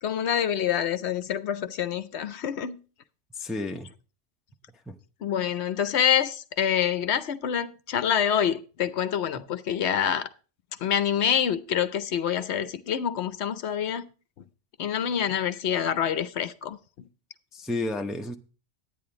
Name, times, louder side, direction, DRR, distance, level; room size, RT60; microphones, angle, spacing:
voice 1, 0.0-2.8 5.2-10.3 10.8-14.0 14.8-16.8, left 9 dB, 65° left, 0.9 m, -26 dB
voice 2, 3.3-3.9 4.9-5.0 17.5-18.4, left 2 dB, ahead, 0.5 m, -31 dB
10.5 x 9.2 x 3.8 m
omnidirectional pair, 1.2 m